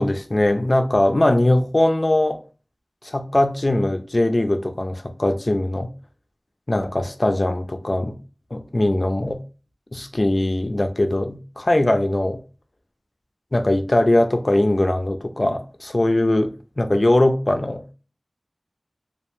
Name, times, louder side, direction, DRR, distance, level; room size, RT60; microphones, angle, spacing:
voice 1, 0.0-2.4 3.0-5.9 6.7-8.1 8.5-9.4 9.9-12.4 13.5-16.5 16.8-17.8, left 1 dB, 45° left, 6 dB, 0.3 m, -20 dB
2.3 x 2.1 x 2.9 m, 0.35 s
wide cardioid pair, 50°, 0 cm